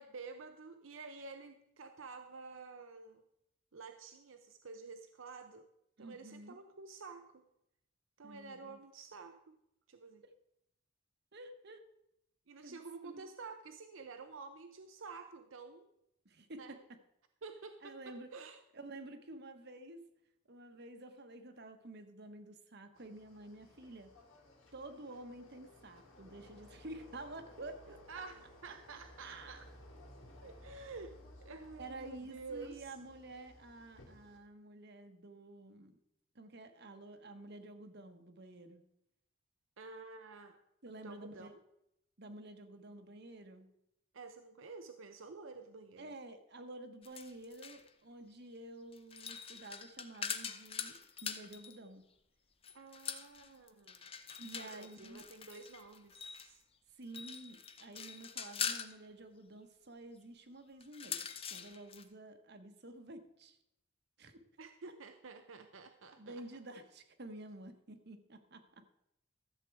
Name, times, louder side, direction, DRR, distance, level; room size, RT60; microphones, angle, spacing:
voice 1, 0.0-3.2 3.7-5.7 6.0-7.5 8.2-9.6 9.9-10.2 12.5-15.9 16.6-16.8 17.4-18.6 28.1-29.7 30.4-33.0 39.8-40.6 41.0-41.6 44.1-46.1 52.7-54.0 54.5-56.6 64.6-66.4, right 4 dB, 75° right, 7 dB, 0.7 m, -50 dB
voice 2, 6.0-6.5 8.2-8.8 11.3-11.8 12.6-13.3 16.2-17.0 17.8-18.3 18.7-20.0 20.5-24.1 24.7-28.0 29.2-29.6 31.8-36.0 36.3-38.8 40.8-41.5 42.2-43.7 46.0-52.1 54.4-55.3 56.9-63.6 64.2-64.4 66.2-68.9, right 2 dB, 55° right, 8 dB, 1.1 m, -50 dB
sound 1, 23.0-34.4, left 1 dB, 80° left, 2.7 m, -58 dB
sound 2, 47.0-47.9 48.9-51.8 52.6-56.5 57.0-58.9 60.8-62.0, left 7 dB, 30° left, 0.7 m, -43 dB
13.5 x 7.6 x 4.7 m, 0.81 s
head